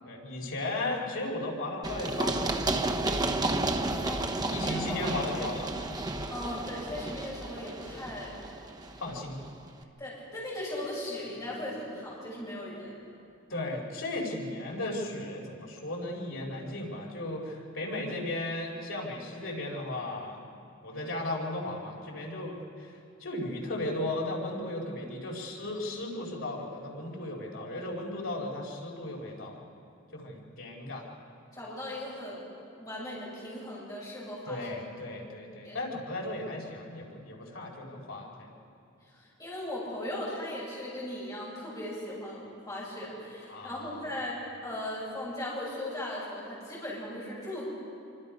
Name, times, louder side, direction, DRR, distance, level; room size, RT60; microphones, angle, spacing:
voice 1, 0.0-3.2 4.5-5.8 9.0-9.4 13.5-20.4 20.8-22.9 23.2-29.6 30.1-31.1 34.5-38.5 43.5-44.0, left 2 dB, 70° left, -2 dB, 4.8 m, -36 dB
Run, 1.8-9.5, right 2 dB, 20° right, 1.0 m, -32 dB
voice 2, 4.0-4.3 4.6-5.1 6.3-8.4 10.0-13.0 31.5-32.5 32.8-34.7 35.6-35.8 39.1-47.6, left 1 dB, 15° left, -7 dB, 7.8 m, -38 dB
26.0 x 25.0 x 5.3 m, 2.5 s
head